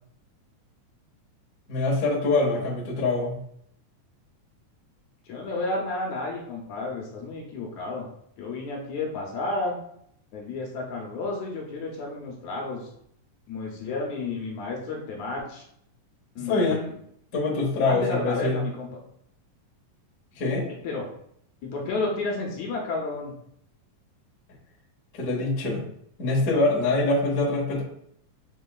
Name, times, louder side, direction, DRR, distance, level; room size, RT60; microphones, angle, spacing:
voice 1, 1.7-3.4 16.4-16.8 17.3-18.6 20.3-20.7 25.1-25.8 26.2-27.8, left 2 dB, 50° left, -5 dB, 1.0 m, -24 dB
voice 2, 5.3-8.1 8.4-9.8 10.3-12.9 13.5-15.6 16.4-16.9 17.8-18.9 20.7-21.1 21.6-23.4, left 3 dB, 70° left, -1 dB, 2.0 m, -31 dB
5.4 x 4.0 x 2.3 m, 0.71 s
omnidirectional pair, 3.7 m